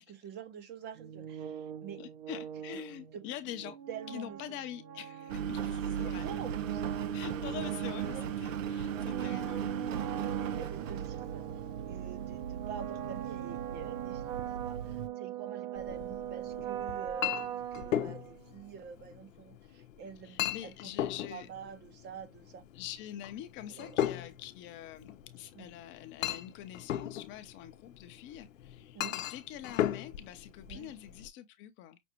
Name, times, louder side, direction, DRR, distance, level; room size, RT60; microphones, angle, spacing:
voice 1, 0.2-2.0 2.7-2.8 3.1-3.2 3.9-4.4 5.8-7.0 8.1-8.3 9.1-9.5 10.2-11.4 11.9-20.9 21.3-22.6 23.6-24.0 25.6-25.7 28.9-29.2 30.7-30.9, right 7 dB, 25° right, 0.7 m, -47 dB
sound 1, 1.0-18.6, right 10 dB, 50° right, 1.0 m, -41 dB
voice 2, 2.0-3.8 4.1-6.2 7.1-9.7 10.1-10.4 20.2-21.5 22.7-32.0, left 11 dB, 30° left, 0.6 m, -45 dB
Engine, 5.3-15.1, right 8 dB, 75° right, 0.7 m, -37 dB
Chink clink, 15.8-31.3, left 11 dB, 80° left, 0.7 m, -38 dB
6.1 x 2.5 x 2.9 m
hypercardioid pair, 130°, 39 cm